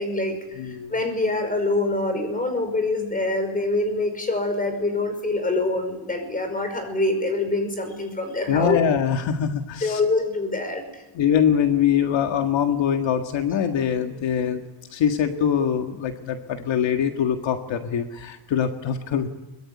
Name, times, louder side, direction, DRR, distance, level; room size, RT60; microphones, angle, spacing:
voice 1, 0.0-8.9 9.8-11.0, left 2 dB, 15° left, 7 dB, 5.4 m, -25 dB
voice 2, 0.6-0.9 8.5-10.0 11.1-14.6 14.9-19.3, left 8 dB, 65° left, 5 dB, 1.8 m, -23 dB
23.0 x 22.5 x 9.8 m, 1.0 s
cardioid pair, 160°, 47 cm